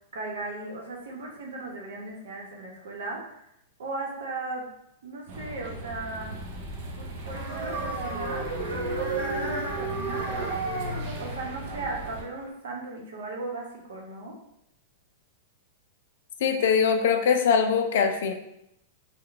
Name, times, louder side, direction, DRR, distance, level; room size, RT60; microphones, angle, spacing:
voice 1, 0.1-3.4 3.8-4.7 5.0-6.3 7.0-10.5 11.2-14.4, right 2 dB, 80° right, -1 dB, 1.0 m, -37 dB
sound 1, 5.3-12.2, right 1 dB, 35° right, 0.5 m, -38 dB
sound 2, 7.3-12.5, right 3 dB, 55° right, 0.9 m, -33 dB
voice 2, 16.4-18.3, left 6 dB, 55° left, 6 dB, 0.4 m, -22 dB
3.7 x 2.2 x 3.4 m, 0.79 s
supercardioid pair, 180°, 0 cm